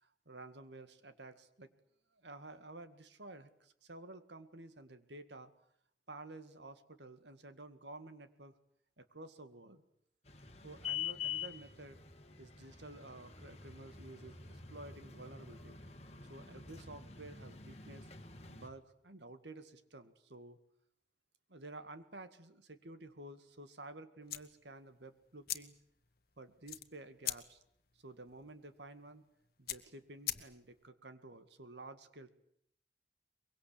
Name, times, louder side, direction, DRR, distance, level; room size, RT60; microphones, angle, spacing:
voice 1, 0.0-1.7 2.1-5.5 6.1-8.5 9.0-9.8 10.6-12.0 12.4-15.8 16.3-18.1 18.5-20.6 21.5-25.7 26.4-27.6 28.0-29.2 29.6-32.3, right 2 dB, 75° right, 10 dB, 2.0 m, -52 dB
sound 1, 10.3-18.7, left 8 dB, 35° left, 2.0 m, -46 dB
sound 2, 24.2-30.9, left 13 dB, 55° left, 1.4 m, -45 dB
23.5 x 22.5 x 8.6 m, 0.70 s
head